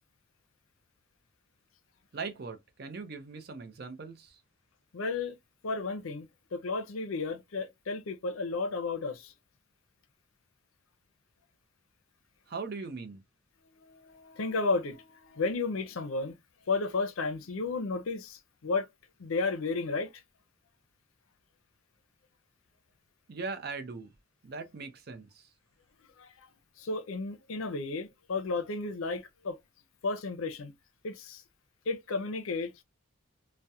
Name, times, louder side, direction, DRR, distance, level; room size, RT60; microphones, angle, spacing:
voice 1, 2.1-4.4 12.5-13.2 23.3-24.1 24.4-25.5, right 4 dB, 50° right, 0.5 m, -40 dB
voice 2, 4.9-5.4 5.6-9.3 13.9-16.4 16.7-18.9 19.2-20.1 26.2-26.5 26.8-29.6 30.0-30.7 31.0-31.4 31.9-32.8, left 3 dB, 75° left, 0.5 m, -33 dB
2.8 x 2.1 x 2.3 m
head